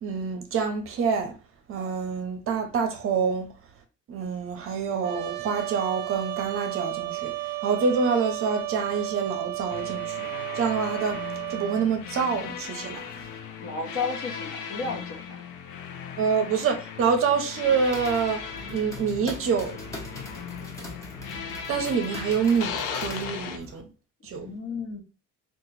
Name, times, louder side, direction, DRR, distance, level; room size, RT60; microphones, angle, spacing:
voice 1, 0.0-1.3 1.7-3.5 4.1-10.3 10.6-11.2 11.5-13.1 16.2-18.4 18.7-19.8 21.7-23.8 24.2-24.5, right 5 dB, 45° right, 0.7 m, -26 dB
Trumpet, 5.0-11.9, right 18 dB, 80° right, 0.5 m, -33 dB
sound 1, 9.7-23.6, left 7 dB, 75° left, 0.6 m, -37 dB
voice 2, 13.6-15.4 24.3-25.0, left 4 dB, 45° left, 0.9 m, -33 dB
sound 2, 17.6-23.8, left 1 dB, 10° left, 0.8 m, -42 dB
2.9 x 2.4 x 4.0 m
cardioid pair, 165°, 31 cm